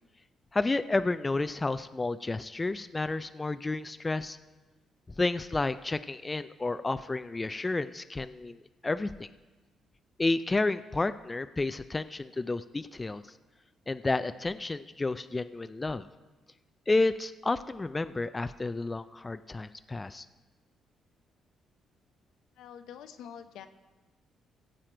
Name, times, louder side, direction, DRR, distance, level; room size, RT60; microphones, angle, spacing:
voice 1, 0.5-4.4 5.2-9.3 10.2-13.2 13.9-16.0 16.9-20.3, left 2 dB, 20° left, 12 dB, 0.3 m, -31 dB
voice 2, 22.6-23.7, left 8 dB, 80° left, 8 dB, 0.7 m, -46 dB
17.0 x 7.6 x 4.4 m, 1.2 s
cardioid pair, 90°, 0 cm